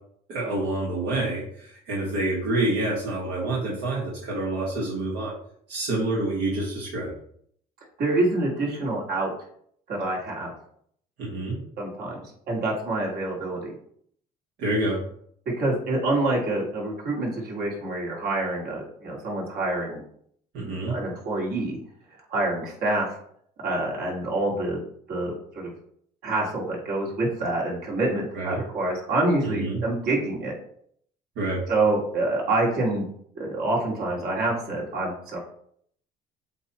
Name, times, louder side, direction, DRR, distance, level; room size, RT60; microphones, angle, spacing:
voice 1, 0.3-5.3 5.7-7.1 11.2-11.6 14.6-15.0 20.5-21.0 28.3-28.6 29.4-29.8 31.4-31.6, right 2 dB, 80° right, -4 dB, 1.8 m, -27 dB
voice 2, 8.0-9.3 9.9-10.5 11.8-12.2 12.5-13.7 15.6-20.0 20.9-21.8 22.3-23.1 23.6-24.8 25.1-25.7 26.2-30.5 31.7-33.1 33.4-35.4, right 2 dB, 65° right, -3 dB, 2.5 m, -26 dB
8.0 x 2.8 x 4.3 m, 0.65 s
cardioid pair, 110°, 17 cm